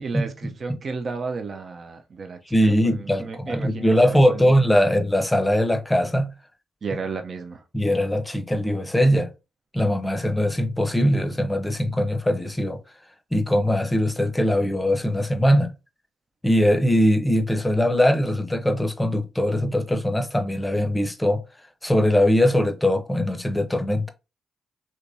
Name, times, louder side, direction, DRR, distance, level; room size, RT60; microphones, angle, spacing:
voice 1, 0.0-2.6 2.8-4.4 6.8-7.6, right 4 dB, 50° right, 0.5 m, -32 dB
voice 2, 2.5-6.3 7.7-9.3 9.7-12.8 13.3-15.7 16.4-21.4 21.8-24.1, equal, 10° left, 0.6 m, -21 dB
3.3 x 2.9 x 2.6 m
supercardioid pair, 55°, 0 cm